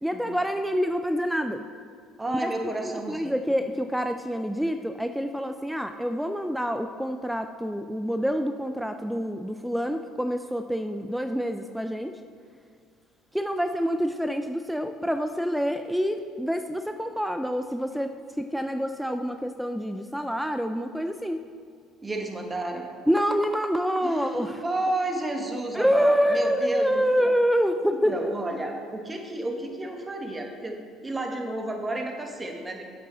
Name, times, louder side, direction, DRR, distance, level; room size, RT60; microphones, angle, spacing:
voice 1, 0.0-1.6 2.4-2.5 2.8-12.2 13.3-18.1 18.4-21.4 23.1-24.6 25.7-28.3, equal, ahead, 7 dB, 0.3 m, -27 dB
voice 2, 2.2-3.5 22.0-22.9 24.0-27.3 27.9-32.8, right 2 dB, 20° right, 3 dB, 1.2 m, -32 dB
7.8 x 7.6 x 3.8 m, 2.1 s
supercardioid pair, 85°, 0 cm